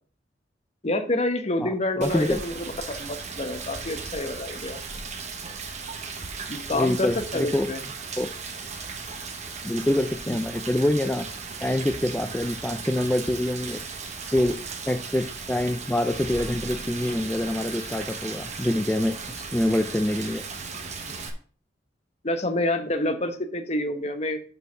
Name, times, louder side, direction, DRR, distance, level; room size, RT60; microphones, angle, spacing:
voice 1, 0.8-4.8 6.5-7.8 10.3-10.4 21.0-21.1 22.2-24.4, left 1 dB, 35° left, 7 dB, 1.0 m, -28 dB
voice 2, 1.6-2.4 6.7-7.7 8.2-8.3 9.6-11.3 11.6-13.8 14.3-20.4, left 1 dB, 10° left, 6 dB, 0.4 m, -26 dB
Rain, 2.0-21.3, right 4 dB, 40° right, 1.1 m, -36 dB
6.3 x 5.5 x 5.6 m, 0.44 s
head